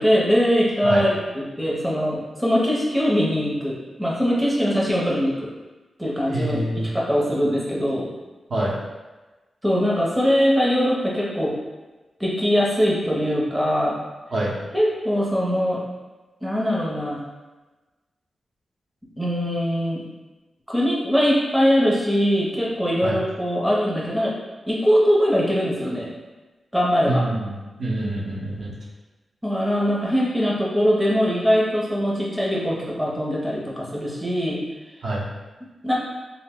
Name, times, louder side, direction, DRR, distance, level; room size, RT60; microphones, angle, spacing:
voice 1, 0.0-5.5 6.0-6.6 6.9-8.1 9.6-11.5 12.2-14.0 14.7-15.8 16.4-17.2 19.2-20.0 20.7-24.3 24.7-26.1 26.7-27.2 29.4-34.6 35.8-36.0, equal, 5° right, -5 dB, 0.6 m, -22 dB
voice 2, 6.3-6.9 8.5-8.7 14.3-14.5 23.0-23.2 27.1-28.8 35.0-35.2, right 1 dB, 70° right, -6 dB, 0.7 m, -25 dB
2.7 x 2.0 x 3.5 m, 1.2 s
wide cardioid pair, 120°, 0 cm